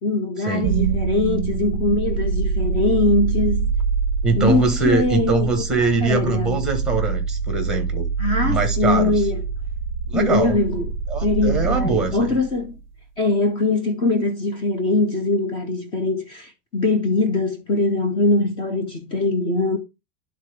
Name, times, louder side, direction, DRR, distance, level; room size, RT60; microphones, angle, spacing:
voice 1, 0.0-3.7 4.4-6.7 8.2-9.4 10.1-10.9 11.2-12.8 13.2-19.8, left 2 dB, 15° left, 0.5 m, -22 dB
sound 1, 0.6-12.7, right 5 dB, 50° right, 0.5 m, -25 dB
voice 2, 4.2-8.1 8.4-9.1 10.1-10.6 11.1-12.3, right 4 dB, ahead, 0.9 m, -22 dB
11.0 x 3.8 x 3.3 m
supercardioid pair, 175°, 30 cm